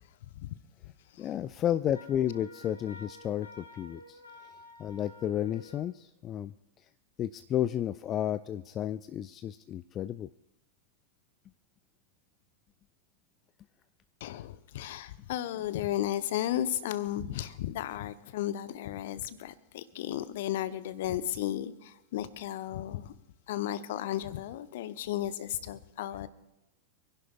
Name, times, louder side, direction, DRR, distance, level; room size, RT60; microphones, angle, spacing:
voice 1, 0.2-0.6 1.1-1.3 14.2-23.1 23.5-26.3, left 12 dB, 55° left, 14 dB, 0.8 m, -34 dB
voice 2, 1.2-4.2 4.8-6.5 7.2-10.3, left 11 dB, 30° left, 14 dB, 0.3 m, -32 dB
Wind instrument woodwind instrument, 1.9-5.9, left 1 dB, 80° left, 2.3 m, -51 dB
27.5 x 11.0 x 2.3 m, 0.94 s
figure-of-eight pair, 90°, 0 cm